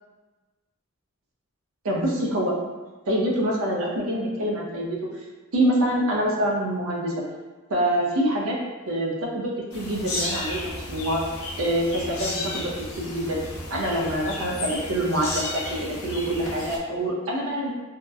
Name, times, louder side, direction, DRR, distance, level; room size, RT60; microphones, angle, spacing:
voice 1, 1.8-2.5 3.1-5.1 5.5-7.1 7.7-8.6 8.9-11.2 11.6-13.4 13.7-17.7, right 1 dB, 85° right, -2 dB, 0.5 m, -25 dB
sound 1, 9.7-16.8, left 2 dB, 75° left, 0.5 m, -33 dB
2.8 x 2.1 x 2.3 m, 1.3 s
head